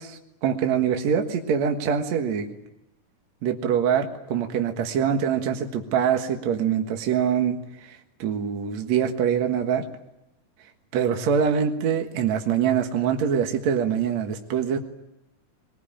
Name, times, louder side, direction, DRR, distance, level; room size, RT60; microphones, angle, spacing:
voice 1, 0.0-2.6 3.4-9.9 10.9-14.8, right 8 dB, 60° right, 4 dB, 2.7 m, -24 dB
22.5 x 21.0 x 8.9 m, 0.91 s
omnidirectional pair, 3.8 m